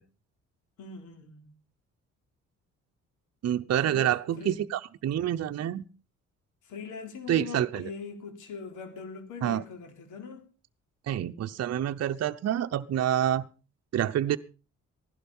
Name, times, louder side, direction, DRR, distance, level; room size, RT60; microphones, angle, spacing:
voice 1, 0.8-1.5 3.7-4.6 6.6-10.4, left 5 dB, 80° left, 3.6 m, -41 dB
voice 2, 3.4-5.8 7.3-7.9 9.4-9.6 11.1-13.5 13.9-14.4, right 11 dB, 55° right, 0.8 m, -27 dB
16.0 x 11.5 x 5.4 m
cardioid pair, 90°, 30 cm